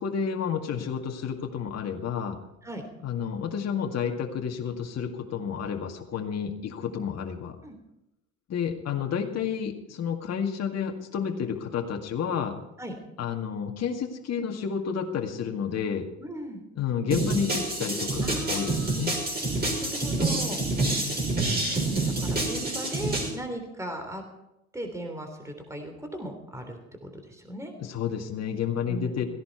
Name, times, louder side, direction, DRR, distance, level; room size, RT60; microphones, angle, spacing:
voice 1, 0.0-2.4 3.0-7.6 8.5-12.6 13.2-16.1 16.8-19.1 27.8-29.2, left 7 dB, 40° left, 3 dB, 2.0 m, -30 dB
voice 2, 16.2-16.6 18.2-19.1 19.6-20.6 21.3-24.2 24.7-27.7 28.9-29.3, right 1 dB, 5° right, 5 dB, 3.3 m, -38 dB
sound 1, 17.1-23.3, right 2 dB, 20° right, 5.8 m, -27 dB
16.5 x 15.5 x 4.6 m, 0.87 s
figure-of-eight pair, 65°, 41 cm